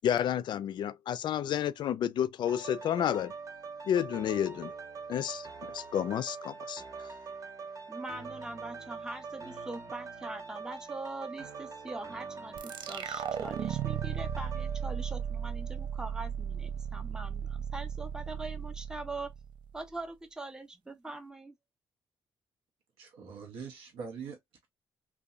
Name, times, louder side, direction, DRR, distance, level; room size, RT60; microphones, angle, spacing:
voice 1, 0.0-3.3 3.9-4.7 5.1-5.5 5.7-6.8, left 10 dB, 60° left, 0.3 m, -30 dB
sound 1, 2.4-16.2 16.6-16.7, right 4 dB, 40° right, 0.8 m, -44 dB
voice 2, 7.9-19.3 19.7-21.5, right 2 dB, 10° right, 0.5 m, -42 dB
sound 2, 12.6-19.8, right 8 dB, 65° right, 0.4 m, -36 dB
voice 3, 23.0-24.7, right 6 dB, 85° right, 0.8 m, -43 dB
2.7 x 2.2 x 2.3 m
supercardioid pair, 70°, 9 cm